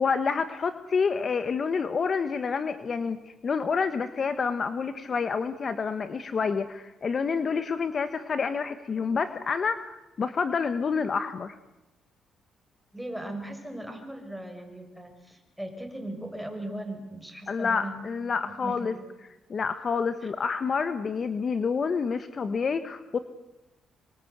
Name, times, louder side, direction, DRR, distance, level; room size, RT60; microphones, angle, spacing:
voice 1, 0.0-11.6 17.5-18.9 19.5-23.2, left 5 dB, 45° left, 11 dB, 1.4 m, -28 dB
voice 2, 12.9-18.0 18.4-19.0 20.2-20.3, right 1 dB, ahead, 4 dB, 6.5 m, -38 dB
26.5 x 24.0 x 8.2 m, 1.0 s
cardioid pair, 90°, 0 cm